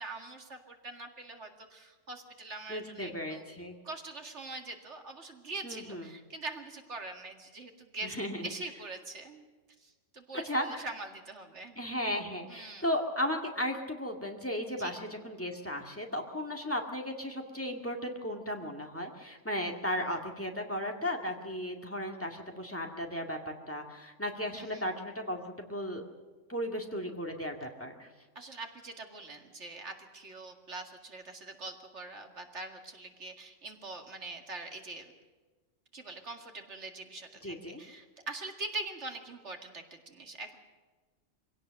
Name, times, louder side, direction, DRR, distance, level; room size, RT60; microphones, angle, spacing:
voice 1, 0.0-3.4 3.8-8.1 8.4-9.4 9.8-11.8 12.5-12.8 14.8-15.0 24.5-24.9 28.4-35.1 35.9-40.6, right 2 dB, 65° right, 4 dB, 2.4 m, -43 dB
voice 2, 2.7-3.8 5.6-6.1 8.0-8.5 10.4-10.9 11.8-23.4 23.7-26.0 26.5-28.1 37.4-37.8, equal, 10° left, 2 dB, 2.1 m, -35 dB
23.5 x 17.5 x 6.6 m, 1.3 s
omnidirectional pair, 1.3 m